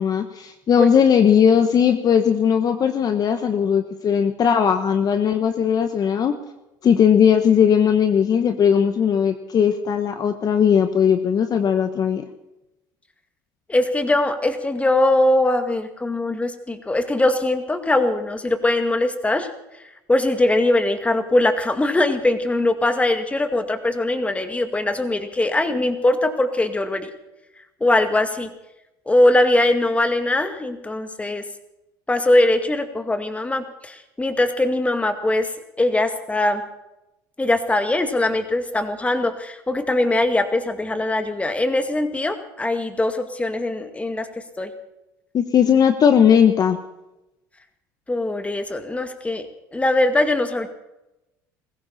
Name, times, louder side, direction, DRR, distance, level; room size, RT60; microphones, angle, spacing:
voice 1, 0.0-6.3 6.8-12.2 45.3-46.8, left 8 dB, 45° left, 8 dB, 1.3 m, -18 dB
voice 2, 13.7-19.5 20.1-27.1 27.8-28.5 29.1-31.4 32.1-35.5 35.8-36.6 37.4-44.3 44.6-44.7 48.1-49.5 49.7-50.7, left 2 dB, 15° left, 7 dB, 2.2 m, -21 dB
20.5 x 16.0 x 4.3 m, 0.93 s
supercardioid pair, 85°, 9 cm